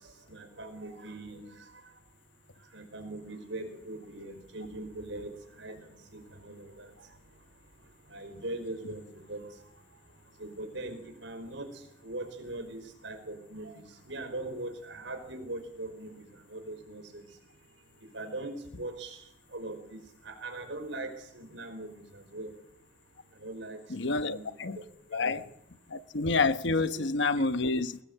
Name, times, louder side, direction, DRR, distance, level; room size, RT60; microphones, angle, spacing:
voice 1, 0.3-1.5 2.7-5.3 5.6-5.8 6.1-6.9 8.1-9.4 10.4-11.7 12.0-16.2 16.5-17.2 18.1-19.2 19.5-22.5 23.4-24.4 25.1-25.4 26.8-26.9 27.4-27.5, right 2 dB, 70° right, 5.2 m, -41 dB
voice 2, 23.9-24.8 25.1-25.5 25.9-28.0, left 3 dB, 65° left, 1.0 m, -28 dB
22.5 x 19.0 x 8.0 m
head